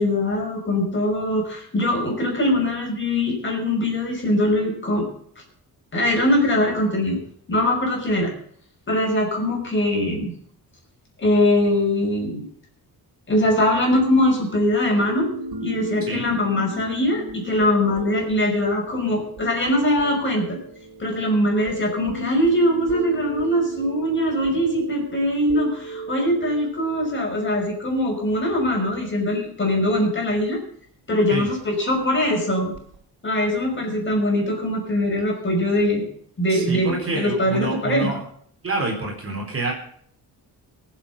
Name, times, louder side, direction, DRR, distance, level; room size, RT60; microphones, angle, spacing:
voice 1, 0.0-5.1 5.9-7.2 7.5-8.3 8.9-10.3 11.2-12.5 13.3-15.3 15.6-20.6 21.0-30.6 31.1-32.7 33.2-36.1 36.4-38.1, left 1 dB, 30° left, 0 dB, 5.8 m, -22 dB
sound 1, 15.2-28.4 32.7-33.0, right 1 dB, 65° right, 3.4 m, -36 dB
voice 2, 36.5-38.2 38.6-39.7, right 3 dB, 35° right, -1 dB, 4.0 m, -27 dB
23.5 x 7.9 x 5.5 m, 0.62 s
wide cardioid pair, 145°, 39 cm